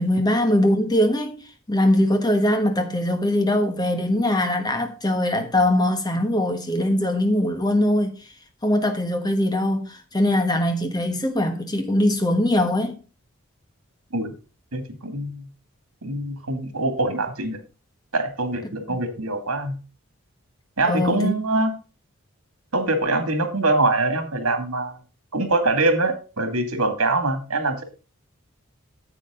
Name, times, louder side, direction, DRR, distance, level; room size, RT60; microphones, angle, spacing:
voice 1, 0.0-1.4 1.7-8.2 8.6-12.9 18.9-19.0 20.8-21.3, left 1 dB, 20° left, 1.4 m, -21 dB
voice 2, 14.7-15.5 16.0-17.6 18.1-19.7 20.8-21.7 22.7-25.0 25.3-27.8, right 2 dB, 80° right, 2.3 m, -23 dB
9.9 x 7.7 x 3.8 m
head